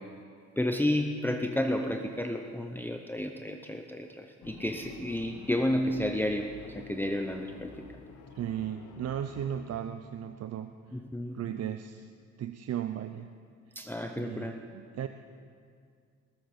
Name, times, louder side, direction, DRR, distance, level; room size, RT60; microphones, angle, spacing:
voice 1, 0.6-7.7 10.9-11.4 13.8-14.5, left 1 dB, 5° left, 4 dB, 0.8 m, -31 dB
sound 1, 4.4-9.8, left 5 dB, 80° left, 1.3 m, -50 dB
voice 2, 8.3-10.7 11.3-12.1 12.4-13.3 13.7-13.8 14.2-15.1, right 10 dB, 55° right, 9 dB, 0.6 m, -36 dB
19.5 x 8.3 x 6.0 m, 2.2 s
cardioid pair, 90°, 30 cm